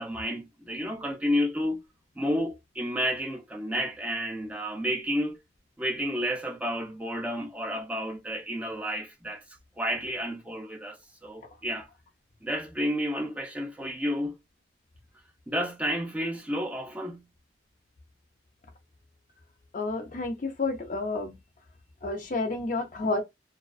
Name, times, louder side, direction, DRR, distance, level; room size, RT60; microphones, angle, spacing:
voice 1, 0.0-1.8 2.2-5.4 5.8-9.4 9.8-11.9 12.4-14.4 15.5-17.3, equal, 10° right, 0.5 m, -31 dB
voice 2, 19.7-21.4 22.0-23.2, left 3 dB, 45° left, 0.5 m, -30 dB
2.3 x 2.2 x 2.3 m
head